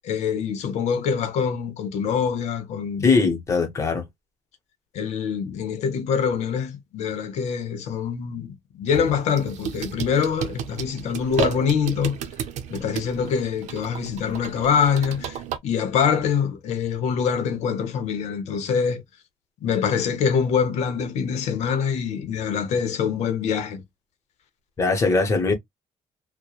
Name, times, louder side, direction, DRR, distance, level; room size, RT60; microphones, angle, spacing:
voice 1, 0.0-3.1 4.9-12.2 12.7-15.4 15.6-19.0 19.6-23.8, left 7 dB, 75° left, 0.8 m, -24 dB
voice 2, 3.0-4.1 24.8-25.5, left 4 dB, 25° left, 0.8 m, -20 dB
sound 1, 8.9-15.6, right 8 dB, 85° right, 0.6 m, -33 dB
2.9 x 2.1 x 2.3 m
cardioid pair, 175°, 12 cm